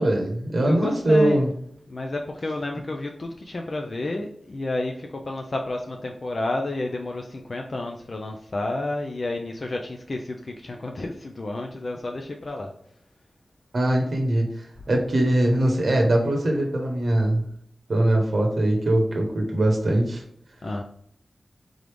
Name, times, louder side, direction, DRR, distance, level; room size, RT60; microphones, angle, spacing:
voice 1, 0.0-1.5 13.7-17.4 17.9-20.2, right 1 dB, 55° right, 1 dB, 0.9 m, -22 dB
voice 2, 0.6-1.4 1.9-12.7 20.6-20.8, left 2 dB, 45° left, 2 dB, 0.4 m, -30 dB
3.8 x 3.2 x 3.4 m, 0.70 s
wide cardioid pair, 105°, 0 cm